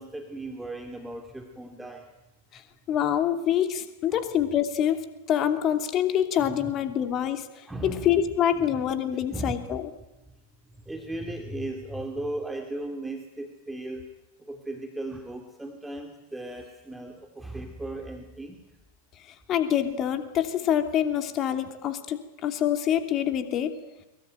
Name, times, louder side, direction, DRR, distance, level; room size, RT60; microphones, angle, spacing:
voice 1, 0.0-2.1 4.1-4.2 6.5-6.7 7.7-8.2 8.5-9.5 10.9-14.0 14.4-18.7, right 2 dB, 5° right, 3 dB, 2.7 m, -37 dB
voice 2, 2.9-5.0 5.3-7.5 7.8-9.9 19.5-23.7, left 10 dB, 35° left, 7 dB, 2.8 m, -26 dB
23.5 x 22.5 x 9.3 m, 0.99 s
figure-of-eight pair, 90°, 0 cm